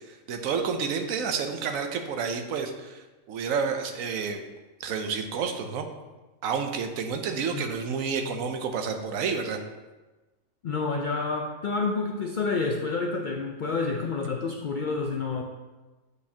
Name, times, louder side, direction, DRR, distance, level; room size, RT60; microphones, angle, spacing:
voice 1, 0.1-4.4 4.8-5.9 6.4-9.6, right 5 dB, 85° right, 6 dB, 1.1 m, -30 dB
voice 2, 10.6-15.4, left 4 dB, 70° left, 1 dB, 0.4 m, -29 dB
7.9 x 4.9 x 2.8 m, 1.2 s
omnidirectional pair, 1.4 m